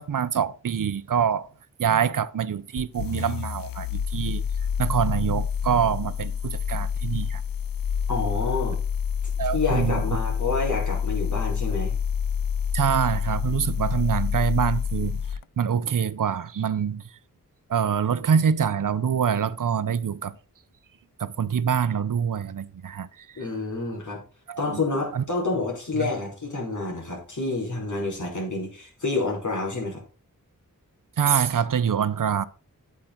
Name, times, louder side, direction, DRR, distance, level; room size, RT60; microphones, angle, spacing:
voice 1, 0.0-1.5 1.8-4.4 4.8-7.4 9.4-10.0 12.7-15.2 15.6-17.0 17.7-20.3 21.2-23.1 24.5-24.8 25.1-25.2 26.0-26.1 31.2-32.5, right 7 dB, 70° right, 0.7 m, -25 dB
sound 1, 2.8-15.4, left 7 dB, 90° left, 0.5 m, -28 dB
voice 2, 8.1-8.8 9.5-11.9 23.4-24.2 24.6-30.0, left 3 dB, 60° left, 4.5 m, -28 dB
8.8 x 8.5 x 3.8 m
wide cardioid pair, 80°, 34 cm